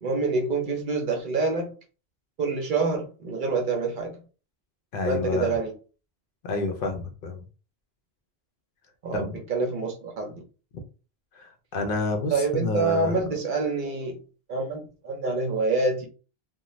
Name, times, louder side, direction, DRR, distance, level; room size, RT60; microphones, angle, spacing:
voice 1, 0.0-1.7 2.4-4.2 5.0-5.7 9.0-10.3 12.3-14.2 14.5-16.1, right 3 dB, 55° right, 0.7 m, -26 dB
voice 2, 4.9-5.6 6.4-7.4 9.1-9.4 11.3-13.2, left 3 dB, 65° left, 0.7 m, -29 dB
2.5 x 2.1 x 3.0 m
omnidirectional pair, 1.1 m